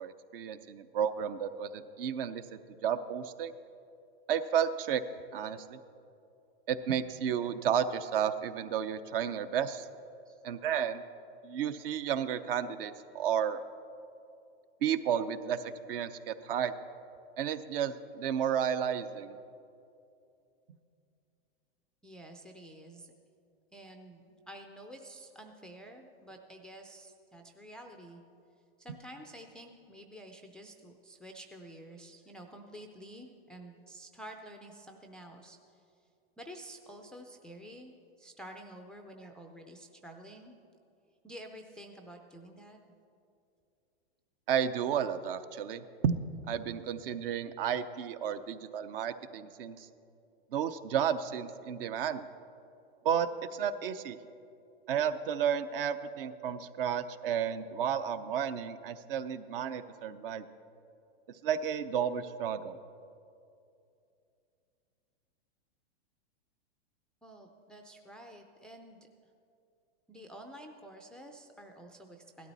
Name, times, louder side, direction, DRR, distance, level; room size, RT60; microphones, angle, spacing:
voice 1, 0.0-2.4 2.8-3.5 4.3-5.0 5.3-5.8 6.7-9.9 10.4-11.0 11.4-13.6 14.8-16.7 17.4-19.4 44.5-49.9 50.5-52.3 53.0-54.2 54.9-60.4 61.4-62.8, right 8 dB, 60° right, 12 dB, 0.8 m, -32 dB
voice 2, 22.0-23.1 23.7-28.2 28.8-35.8 36.4-40.6 41.2-42.8 67.2-69.1 70.1-72.5, right 1 dB, 5° left, 4 dB, 0.3 m, -50 dB
17.0 x 12.0 x 4.1 m, 2.6 s
hypercardioid pair, 140°, 32 cm